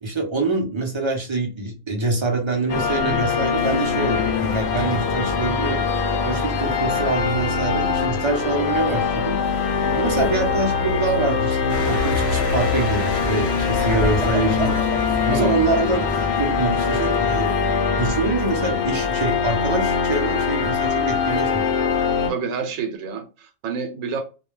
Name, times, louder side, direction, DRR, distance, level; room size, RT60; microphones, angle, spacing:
voice 1, 0.0-5.8 6.2-9.4 9.9-16.0 16.4-17.6 18.0-21.7, right 3 dB, 40° right, 0.4 m, -25 dB
sound 1, 2.7-22.3, left 5 dB, 65° left, 0.7 m, -22 dB
sound 2, 11.7-18.5, equal, 25° left, 0.9 m, -31 dB
voice 2, 15.3-15.7 22.3-24.2, right 6 dB, 80° right, 1.0 m, -28 dB
2.4 x 2.2 x 3.1 m
omnidirectional pair, 1.4 m